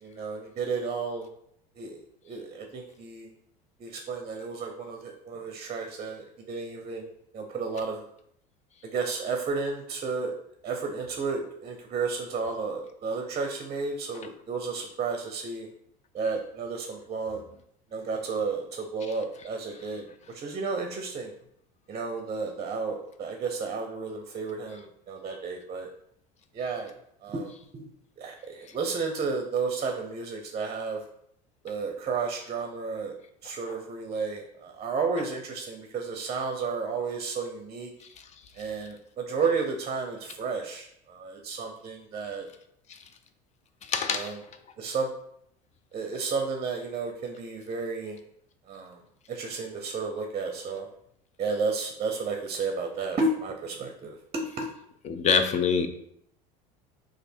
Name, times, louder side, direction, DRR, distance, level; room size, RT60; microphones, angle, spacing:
voice 1, 0.0-1.3 1.8-3.3 3.8-8.1 8.8-10.3 10.6-15.7 16.1-17.4 17.9-21.3 21.9-25.9 26.5-26.9 27.2-27.9 28.2-31.0 31.6-33.2 33.4-37.9 38.6-42.5 44.1-44.4 44.8-45.1 45.9-48.2 48.7-49.0 49.3-50.9 51.4-54.7, right 4 dB, 30° right, 4 dB, 0.6 m, -32 dB
voice 2, 43.9-44.4 55.1-55.9, left 6 dB, 35° left, 8 dB, 0.5 m, -24 dB
3.1 x 2.5 x 4.3 m, 0.72 s
supercardioid pair, 95°, 20 cm